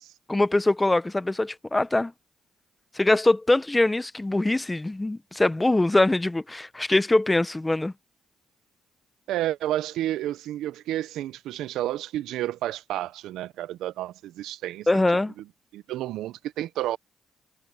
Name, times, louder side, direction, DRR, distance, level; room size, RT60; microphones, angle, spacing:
voice 1, 0.3-2.1 2.9-7.9 14.9-15.3, left 2 dB, 15° left, 0.9 m, -23 dB
voice 2, 9.3-15.0 15.7-17.0, right 13 dB, 85° right, 0.6 m, -30 dB
cardioid pair, 90°, 0 cm